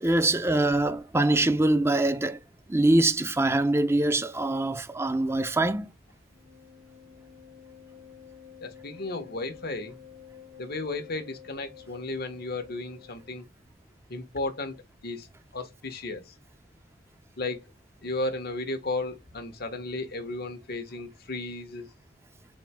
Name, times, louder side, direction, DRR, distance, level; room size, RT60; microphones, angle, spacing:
voice 1, 0.0-2.4 2.7-5.9, right 2 dB, 15° right, 0.5 m, -24 dB
Wind instrument woodwind instrument, 6.3-13.3, left 9 dB, 65° right, 2.7 m, -51 dB
voice 2, 8.6-10.0 10.6-13.5 14.1-15.3 15.5-16.3 17.4-17.7 18.0-21.9, left 2 dB, 55° left, 1.2 m, -34 dB
4.3 x 4.2 x 2.2 m
head